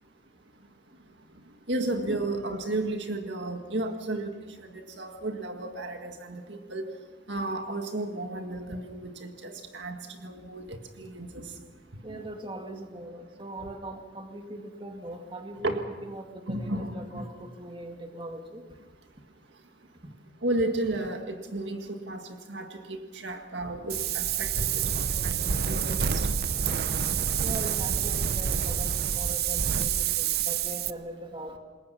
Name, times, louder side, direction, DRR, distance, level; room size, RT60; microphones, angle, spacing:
voice 1, 1.7-4.3 4.6-6.9 7.3-11.5 12.1-12.2 15.6-15.9 16.5-17.2 20.4-24.6 25.0-26.4, right 2 dB, 70° right, 5 dB, 1.9 m, -33 dB
voice 2, 12.0-18.6 20.0-20.1 27.4-31.6, right 1 dB, 25° right, 3 dB, 2.2 m, -41 dB
Wind, 23.9-30.9, right 7 dB, 55° right, 0.7 m, -27 dB
28.0 x 21.0 x 5.8 m, 1.3 s
head